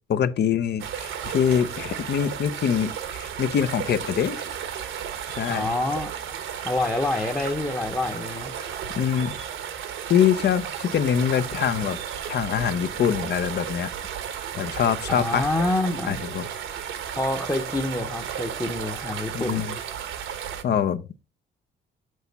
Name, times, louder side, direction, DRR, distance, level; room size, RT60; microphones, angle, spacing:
voice 1, 0.1-2.9 3.2-4.4 5.4-5.7 9.0-9.3 10.1-12.0 12.3-13.9 14.6-15.5 16.1-16.5 19.3-19.7 20.6-21.0, left 8 dB, 55° left, 0.7 m, -24 dB
sound 1, 0.8-20.6, right 8 dB, 80° right, 1.1 m, -34 dB
voice 2, 5.5-6.1 6.6-8.5 15.1-16.2 17.2-19.6, left 2 dB, 15° left, 0.8 m, -27 dB
6.4 x 5.9 x 4.0 m
cardioid pair, 90°, 20 cm